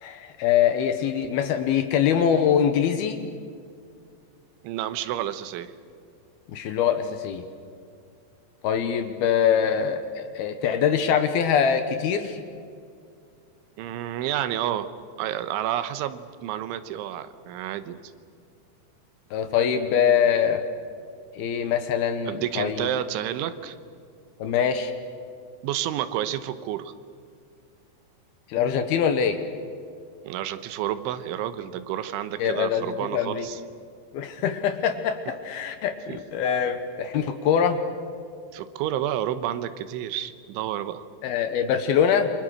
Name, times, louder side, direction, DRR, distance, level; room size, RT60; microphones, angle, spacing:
voice 1, 0.0-3.2 6.5-7.4 8.6-12.4 19.3-20.6 21.4-22.9 24.4-24.9 28.5-29.4 32.4-33.5 34.1-37.8 41.2-42.3, left 8 dB, 70° left, 8 dB, 2.7 m, -23 dB
voice 2, 4.6-5.7 13.8-14.9 15.2-18.0 22.3-23.8 25.6-26.9 30.3-33.6 36.1-36.2 38.5-41.0, right 11 dB, 90° right, 11 dB, 3.5 m, -30 dB
29.0 x 25.0 x 6.4 m, 2.3 s
omnidirectional pair, 5.3 m